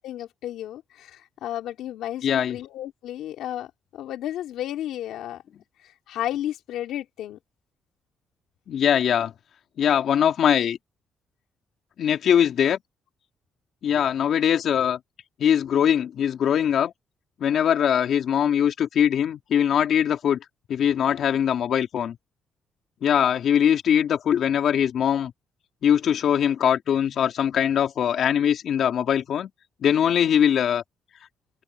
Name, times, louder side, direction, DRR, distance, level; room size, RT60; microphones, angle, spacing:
voice 1, 0.0-5.4 5.8-7.4, left 12 dB, 85° left, 3.2 m, -33 dB
voice 2, 2.2-2.6 8.7-9.3 9.8-10.8 12.0-12.8 13.8-15.0 15.4-16.9 17.4-20.4 20.7-22.2 23.0-25.3 25.8-29.5 29.8-30.8, left 9 dB, 65° left, 3.6 m, -21 dB
open air
cardioid pair, 90°, 0 cm